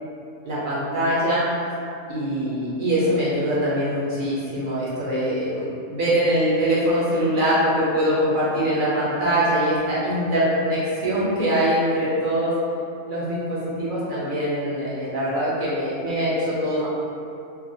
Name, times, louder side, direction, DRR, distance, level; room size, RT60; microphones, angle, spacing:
voice 1, 0.4-1.5 2.1-12.6 13.1-16.9, equal, 60° right, -9 dB, 0.6 m, -23 dB
2.4 x 2.0 x 2.6 m, 2.5 s
omnidirectional pair, 1.3 m